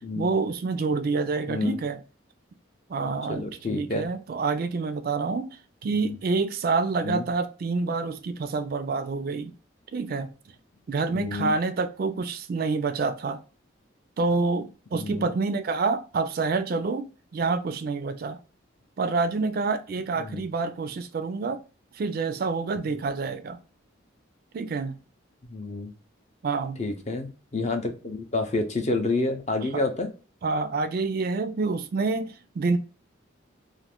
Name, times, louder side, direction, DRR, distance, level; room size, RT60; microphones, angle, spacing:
voice 1, 0.2-2.0 2.9-9.5 9.9-10.3 10.9-13.4 14.2-18.4 19.0-21.6 21.9-23.6 24.5-25.0 26.4-26.8 29.7-29.8 30.4-32.8, right 4 dB, 50° right, 0.3 m, -27 dB
voice 2, 3.3-4.1 7.0-7.2 11.1-11.5 14.9-15.3 20.2-20.4 25.5-25.9 26.8-30.1, left 2 dB, 35° left, 0.5 m, -29 dB
2.5 x 2.5 x 3.4 m
head